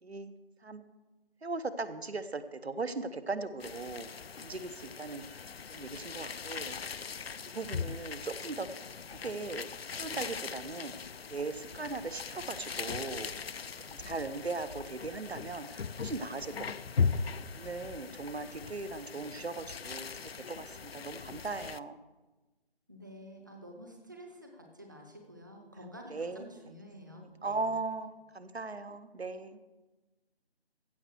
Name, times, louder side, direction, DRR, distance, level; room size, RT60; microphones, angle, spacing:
voice 1, 0.0-0.3 0.6-0.8 1.4-4.1 4.4-5.2 5.7-6.8 7.5-8.7 9.2-9.7 10.0-10.9 11.3-13.3 14.0-17.1 17.5-22.0 26.1-26.5 27.1-29.6, right 3 dB, 75° right, 11 dB, 0.9 m, -38 dB
sound 1, 3.6-21.8, left 5 dB, 70° left, 0.5 m, -39 dB
voice 2, 22.9-27.7, equal, 20° right, 2 dB, 0.7 m, -50 dB
15.5 x 5.4 x 6.4 m, 1.2 s
figure-of-eight pair, 160°, 32 cm